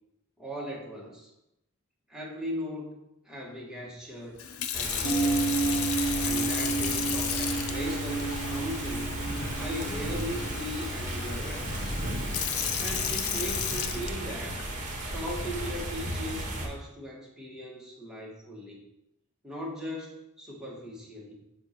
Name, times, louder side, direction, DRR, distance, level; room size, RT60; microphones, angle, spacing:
voice 1, 0.4-1.3 2.1-4.4 4.7-5.5 6.2-9.2 9.6-11.9 12.8-14.6 15.0-18.9 19.4-21.4, equal, 5° right, -4 dB, 1.3 m, -38 dB
Sink (filling or washing) / Fill (with liquid), 4.4-14.6 15.3-15.6, left 9 dB, 75° left, 0.5 m, -34 dB
sound 1, 4.7-16.7, right 1 dB, 35° right, 1.4 m, -35 dB
sound 2, 5.0-14.9 15.2-15.3, right 3 dB, 60° left, 1.1 m, -33 dB
7.8 x 2.6 x 5.8 m, 0.86 s
head